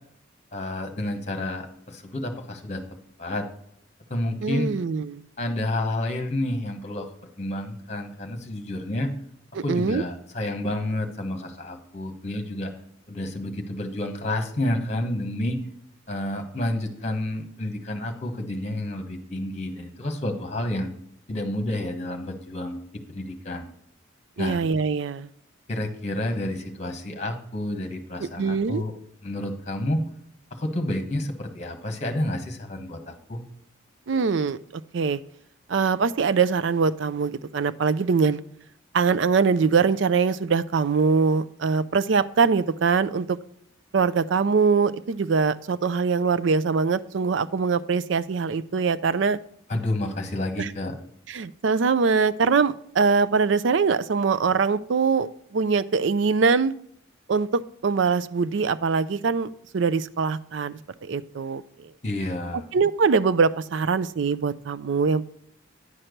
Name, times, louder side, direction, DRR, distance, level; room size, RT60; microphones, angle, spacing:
voice 1, 0.5-2.8 3.2-3.5 4.1-4.7 5.4-7.1 7.4-9.1 9.6-12.7 13.1-15.6 16.1-20.9 21.3-22.8 23.1-23.6 24.4-24.6 25.7-28.9 29.2-30.1 30.5-33.4 49.7-50.9 62.0-62.7, left 1 dB, 35° left, 5 dB, 1.3 m, -29 dB
voice 2, 4.4-5.2 9.5-10.0 24.4-25.3 28.2-28.8 34.1-34.6 34.9-35.2 35.7-38.4 38.9-43.4 43.9-49.4 50.6-50.7 51.3-56.7 57.3-61.9 62.7-65.3, right 5 dB, 60° right, 15 dB, 0.4 m, -23 dB
9.8 x 4.5 x 6.5 m, 0.71 s
head